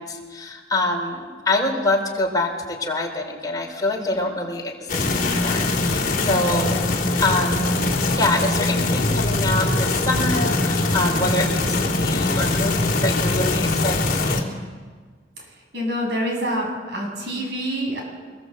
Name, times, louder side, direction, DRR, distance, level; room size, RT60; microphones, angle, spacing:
voice 1, 0.0-6.8 7.2-7.8 8.1-14.5, left 2 dB, 20° left, 1 dB, 4.3 m, -25 dB
sound 1, 4.9-14.4, left 2 dB, 50° left, 3.1 m, -22 dB
voice 2, 15.7-18.0, equal, 70° right, 1 dB, 7.9 m, -26 dB
25.0 x 21.5 x 8.0 m, 1.5 s
head